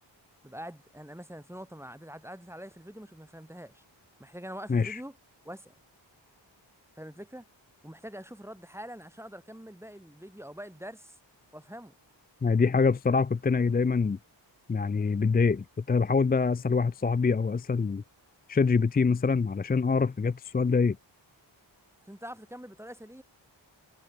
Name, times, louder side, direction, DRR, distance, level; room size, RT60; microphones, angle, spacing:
voice 1, 0.4-3.8 4.2-5.2 5.4-5.7 7.0-7.4 7.8-11.2 11.5-11.9 22.0-23.2, equal, 5° right, 1.4 m, -44 dB
voice 2, 4.7-5.0 12.4-14.2 14.7-18.0 18.5-21.0, left 4 dB, 20° left, 0.3 m, -25 dB
wide cardioid pair, 85°, 46 cm